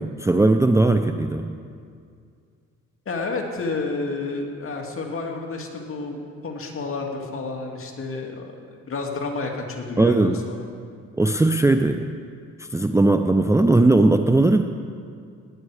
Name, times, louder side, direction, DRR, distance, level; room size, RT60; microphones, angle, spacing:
voice 1, 0.0-1.5 10.0-10.4 11.2-12.1 12.7-14.6, right 2 dB, 10° right, 6 dB, 0.5 m, -18 dB
voice 2, 3.1-10.7, left 3 dB, 45° left, 2 dB, 2.1 m, -30 dB
19.0 x 9.5 x 4.9 m, 2.2 s
cardioid pair, 90°, 30 cm